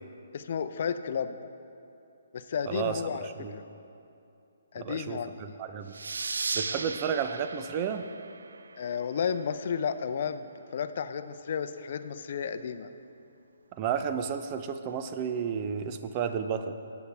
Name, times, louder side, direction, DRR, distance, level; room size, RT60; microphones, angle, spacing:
voice 1, 0.3-1.4 2.3-3.6 4.7-5.6 8.8-12.9, left 7 dB, 55° left, 10 dB, 0.5 m, -33 dB
voice 2, 2.7-3.5 4.8-6.0 6.5-8.1 13.7-16.7, right 7 dB, 30° right, 8 dB, 0.6 m, -32 dB
sound 1, 5.9-9.2, right 4 dB, 80° right, 0.4 m, -36 dB
18.5 x 8.3 x 3.4 m, 2.7 s
hypercardioid pair, 150°, 0 cm